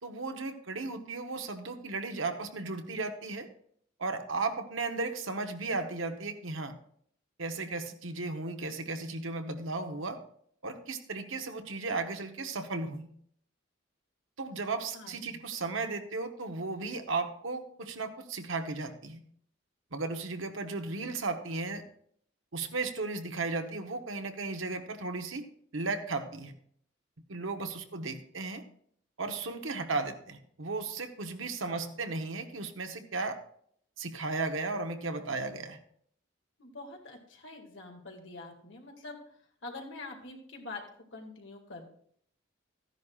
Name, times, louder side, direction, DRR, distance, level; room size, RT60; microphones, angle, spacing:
voice 1, 0.0-3.5 4.0-6.7 7.4-10.2 10.6-13.1 14.4-19.2 19.9-21.8 22.5-25.5 25.7-26.5 27.3-28.6 29.2-33.4 34.0-35.8, right 3 dB, 85° right, 6 dB, 1.1 m, -35 dB
voice 2, 14.9-15.4 31.7-31.9 36.6-39.2 39.6-40.8 41.1-41.8, left 3 dB, 70° left, 2 dB, 2.2 m, -45 dB
14.0 x 10.5 x 2.4 m, 0.63 s
head